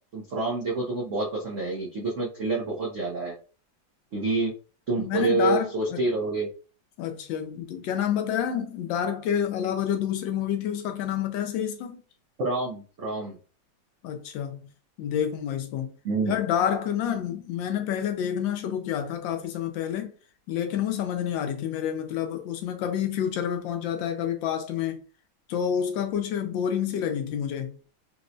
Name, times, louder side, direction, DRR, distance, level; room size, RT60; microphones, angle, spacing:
voice 1, 0.1-3.3 4.1-4.5 4.9-6.5 12.4-13.4 16.0-16.3, right 3 dB, 90° right, 0.6 m, -27 dB
voice 2, 5.0-6.0 7.0-12.0 14.0-14.6 15.0-15.9 16.2-20.1 20.5-25.0 25.5-27.8, left 9 dB, 75° left, 1.2 m, -28 dB
4.2 x 2.1 x 2.5 m
omnidirectional pair, 2.3 m